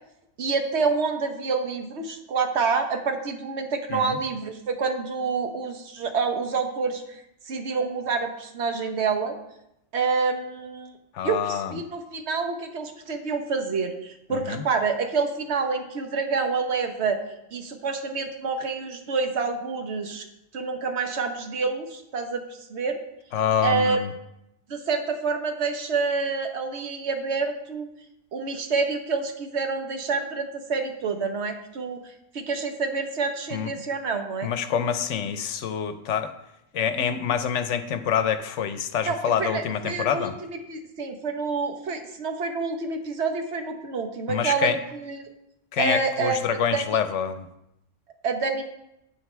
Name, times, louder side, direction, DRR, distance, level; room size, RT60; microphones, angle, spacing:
voice 1, 0.4-9.4 9.9-10.9 11.2-17.2 17.5-20.2 20.5-23.0 23.6-24.0 24.7-27.9 28.3-32.0 32.3-34.5 39.0-40.3 40.7-45.3 45.8-47.0 48.2-48.6, right 4 dB, 65° right, 6 dB, 1.2 m, -27 dB
voice 2, 11.1-11.8 14.3-14.7 23.3-24.1 33.5-33.7 34.4-36.3 36.7-40.3 44.3-44.8 45.7-47.5, left 8 dB, 80° left, 10 dB, 1.0 m, -26 dB
9.2 x 8.0 x 3.3 m, 0.84 s
omnidirectional pair, 1.3 m